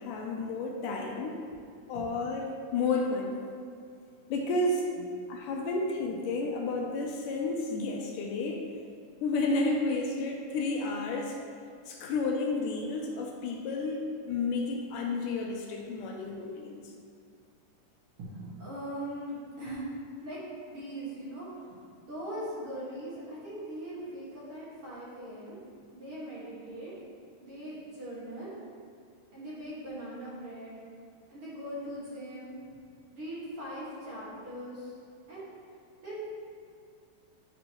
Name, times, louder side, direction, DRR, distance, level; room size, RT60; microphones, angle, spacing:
voice 1, 0.0-1.4 1.9-3.4 4.3-4.9 5.3-8.6 9.2-11.4 11.9-16.8, left 3 dB, 80° left, 0 dB, 2.1 m, -31 dB
voice 2, 18.2-19.8 20.2-20.4 20.7-25.6 25.9-26.9 27.4-28.5 29.3-30.8 31.3-32.8 33.1-34.9 35.3-35.4 36.0-36.2, right 1 dB, 45° right, -9 dB, 2.5 m, -40 dB
10.5 x 5.2 x 3.1 m, 2.3 s
omnidirectional pair, 3.9 m